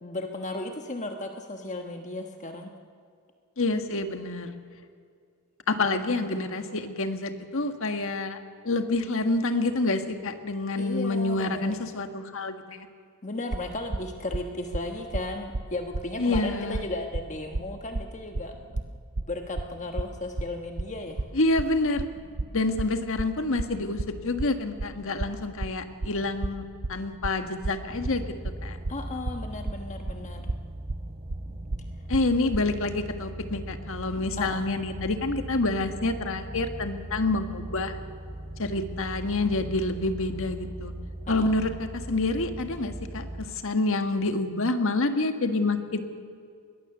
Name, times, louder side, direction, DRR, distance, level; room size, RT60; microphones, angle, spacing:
voice 1, 0.0-2.7 6.2-6.3 10.8-11.7 13.2-18.5 19.2-21.2 28.9-30.5 34.4-34.7 41.3-41.5, left 2 dB, 35° left, 4 dB, 1.3 m, -35 dB
voice 2, 3.6-4.6 5.7-8.4 8.6-12.9 16.2-16.8 21.3-22.1 22.5-26.6 26.9-28.2 28.6-28.8 32.1-38.0 38.6-40.9 41.3-46.0, left 2 dB, 65° left, 7 dB, 1.6 m, -27 dB
sound 1, 13.5-32.7, right 2 dB, 60° right, 0.7 m, -33 dB
cellar wind tube, 27.9-43.5, right 1 dB, 30° right, 2.8 m, -39 dB
22.0 x 19.0 x 6.8 m, 2.3 s
head